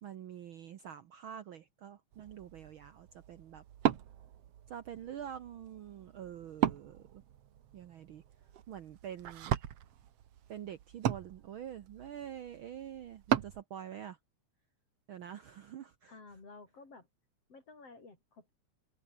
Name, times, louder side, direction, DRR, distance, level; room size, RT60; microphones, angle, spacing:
voice 1, 0.0-3.6 4.7-7.2 7.7-8.2 8.7-9.5 10.5-14.2 15.1-16.1, right 9 dB, 90° right, 1.1 m, -46 dB
Wood, 2.1-13.6, right 10 dB, 60° right, 2.0 m, -38 dB
voice 2, 16.1-17.1 17.5-18.5, left 3 dB, 45° left, 6.8 m, -53 dB
omnidirectional pair, 3.6 m